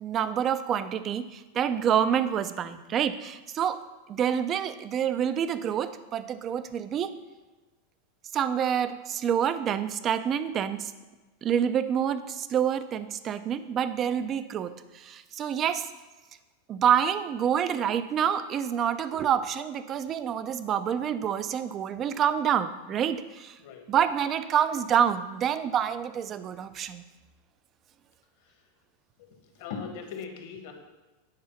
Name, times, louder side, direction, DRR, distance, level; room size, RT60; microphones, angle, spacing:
voice 1, 0.0-3.8 4.1-7.1 8.3-10.9 11.4-15.9 16.7-23.6 23.9-27.0, right 8 dB, 25° right, 12 dB, 0.4 m, -27 dB
voice 2, 23.6-23.9 28.4-28.6 29.2-29.3 29.5-30.7, left 6 dB, 60° left, 3 dB, 1.5 m, -39 dB
9.5 x 4.9 x 5.7 m, 1.2 s
supercardioid pair, 170°, 0 cm